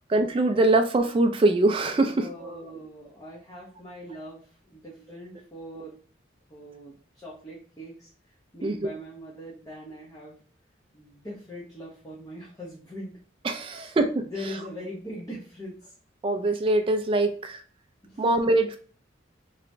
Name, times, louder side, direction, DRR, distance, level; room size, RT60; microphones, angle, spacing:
voice 1, 0.0-2.8 8.6-8.9 13.4-14.2 16.2-17.6 18.2-18.8, right 2 dB, 30° right, 8 dB, 0.3 m, -23 dB
voice 2, 2.1-6.0 6.5-10.4 10.9-13.1 13.7-13.9 14.2-15.9 18.0-18.4, equal, 20° left, -5 dB, 0.7 m, -41 dB
3.2 x 2.9 x 2.6 m, 0.42 s
head